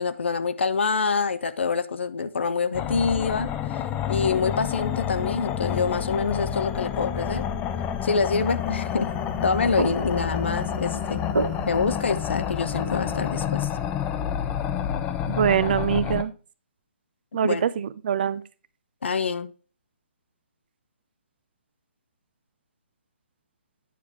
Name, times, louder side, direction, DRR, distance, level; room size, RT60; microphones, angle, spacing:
voice 1, 0.0-3.8 4.1-7.5 8.0-9.1 9.4-11.2 11.7-13.7 17.4-17.6 19.0-19.5, left 5 dB, 65° left, 0.6 m, -26 dB
sound 1, 2.7-16.2, left 9 dB, 20° left, 0.5 m, -29 dB
sound 2, 8.4-13.5, right 2 dB, 85° right, 0.8 m, -33 dB
voice 2, 15.3-16.3 17.3-18.4, right 8 dB, 50° right, 0.5 m, -23 dB
9.3 x 4.6 x 3.4 m
figure-of-eight pair, 135°, 7 cm